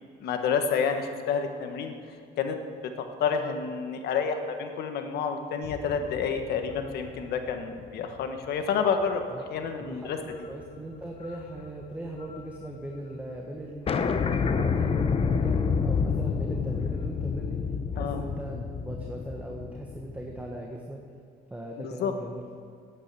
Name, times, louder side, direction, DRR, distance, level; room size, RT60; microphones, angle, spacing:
voice 1, 0.2-1.9 2.4-2.7 3.2-9.2 9.5-10.2 18.0-18.2 21.8-22.1, left 6 dB, 75° left, 6 dB, 1.3 m, -29 dB
sound 1, 5.6-8.2 8.7-8.8 10.3-10.7 10.9-12.4 12.7-12.8 12.9-13.0 13.4-13.5 13.9-20.6, left 5 dB, 35° left, 0.8 m, -29 dB
voice 2, 9.8-13.9 14.2-17.6 17.9-21.0 21.5-22.5, right 1 dB, 10° right, 0 dB, 1.4 m, -39 dB
9.2 x 8.8 x 8.4 m, 2.4 s
cardioid pair, 110°, 17 cm